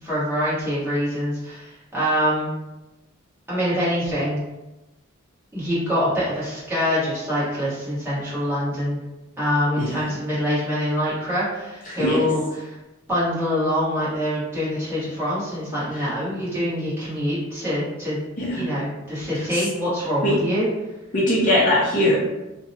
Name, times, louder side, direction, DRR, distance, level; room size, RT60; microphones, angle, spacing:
voice 1, 0.0-2.5 3.5-4.4 5.5-9.0 9.4-12.8 13.1-18.2 18.5-20.7, equal, 10° right, -10 dB, 1.1 m, -25 dB
voice 2, 9.8-10.2 11.9-12.2 15.9-16.1 18.4-18.7 19.3-19.7 20.2-20.4 21.1-22.2, left 1 dB, 40° left, -5 dB, 0.5 m, -22 dB
2.7 x 2.0 x 2.6 m, 1.0 s
head